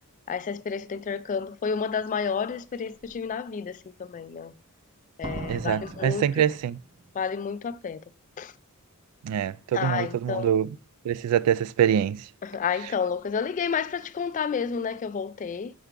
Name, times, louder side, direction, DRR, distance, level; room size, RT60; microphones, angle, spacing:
voice 1, 0.3-4.5 5.2-6.2 7.1-8.0 8.4-8.5 9.7-10.6 12.4-15.7, left 6 dB, 35° left, 0.3 m, -30 dB
Slam, 2.1-2.2 2.8-3.2 5.2-7.1 7.4-7.5, right 2 dB, 25° right, 0.6 m, -40 dB
voice 2, 5.5-6.8 9.2-10.7 11.0-12.2, right 9 dB, 90° right, 0.3 m, -24 dB
6.6 x 3.7 x 4.6 m
head